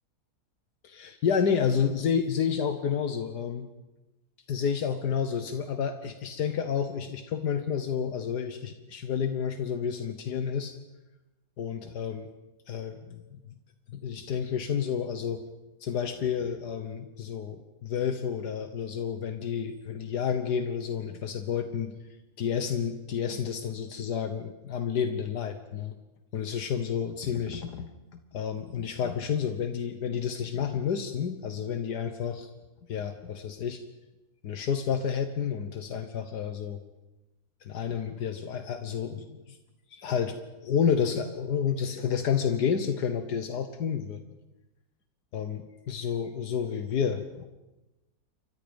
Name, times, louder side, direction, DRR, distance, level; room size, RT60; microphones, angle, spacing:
voice 1, 0.8-3.7 4.5-10.7 11.6-12.3 12.7-13.4 13.9-15.4 15.8-22.0 22.4-25.9 26.3-27.9 28.3-32.5 32.9-33.8 34.4-36.8 37.6-39.6 39.9-44.2 45.3-47.5, left 7 dB, 85° left, 8 dB, 1.7 m, -30 dB
29.0 x 24.5 x 5.2 m, 1.0 s
omnidirectional pair, 1.7 m